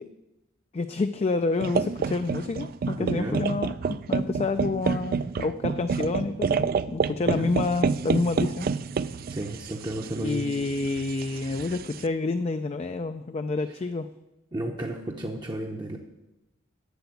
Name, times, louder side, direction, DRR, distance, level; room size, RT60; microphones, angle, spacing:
voice 1, 0.7-3.7 4.1-8.7 10.2-14.1, left 3 dB, 30° left, 9 dB, 0.3 m, -28 dB
sound 1, 1.6-12.0, right 5 dB, 45° right, 0.3 m, -29 dB
voice 2, 3.0-3.4 7.3-7.5 9.3-10.5 13.7-13.8 14.5-16.0, right 1 dB, 20° right, 1 dB, 0.7 m, -33 dB
8.1 x 6.8 x 8.3 m, 0.95 s
head